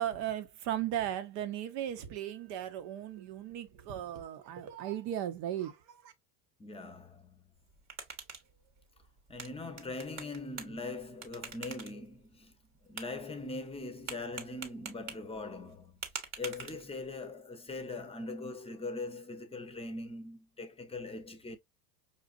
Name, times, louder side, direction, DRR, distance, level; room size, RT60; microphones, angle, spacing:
voice 1, 0.0-6.1, right 11 dB, 60° right, 1.0 m, -36 dB
voice 2, 6.6-7.4 9.3-12.5 12.8-15.9 16.4-21.6, left 2 dB, 10° left, 0.8 m, -41 dB
sound 1, 7.5-17.2, right 5 dB, 35° right, 1.1 m, -47 dB
5.3 x 2.5 x 2.4 m
hypercardioid pair, 90°, 49 cm